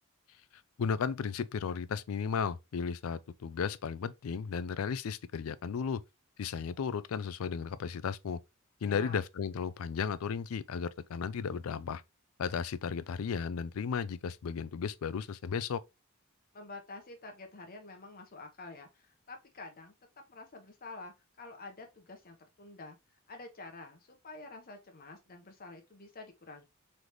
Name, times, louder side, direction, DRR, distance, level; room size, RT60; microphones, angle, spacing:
voice 1, 0.8-6.0 6.4-8.4 8.8-12.0 12.4-15.8, left 6 dB, 85° left, 0.4 m, -34 dB
voice 2, 8.8-9.2 16.5-19.9 20.3-23.0 23.3-26.6, left 3 dB, 45° left, 0.9 m, -48 dB
3.9 x 3.3 x 3.0 m
head